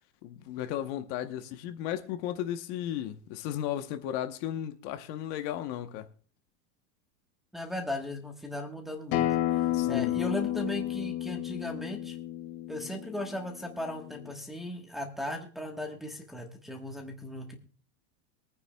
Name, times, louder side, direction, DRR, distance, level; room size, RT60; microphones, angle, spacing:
voice 1, 0.2-6.1 9.6-10.1, left 11 dB, 50° left, 1.0 m, -35 dB
voice 2, 7.5-12.2 12.7-17.6, left 1 dB, ahead, 1.3 m, -37 dB
Acoustic guitar, 9.1-14.3, left 13 dB, 65° left, 2.3 m, -31 dB
23.5 x 9.5 x 2.2 m
supercardioid pair, 155°, 45 cm